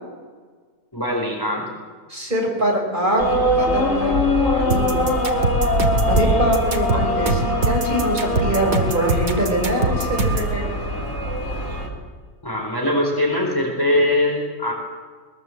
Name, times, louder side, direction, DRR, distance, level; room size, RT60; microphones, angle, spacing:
voice 1, 0.9-1.7 6.0-6.6 6.9-7.0 12.4-14.7, left 1 dB, 15° left, 0 dB, 4.1 m, -22 dB
voice 2, 2.1-4.1 4.5-5.1 6.1-10.7, right 1 dB, 30° right, -1 dB, 5.5 m, -23 dB
sound 1, 3.2-11.9, left 1 dB, 55° left, 3.9 m, -22 dB
sound 2, 4.7-10.5, right 2 dB, 60° right, 2.3 m, -23 dB
21.5 x 21.0 x 7.8 m, 1.5 s
omnidirectional pair, 1.7 m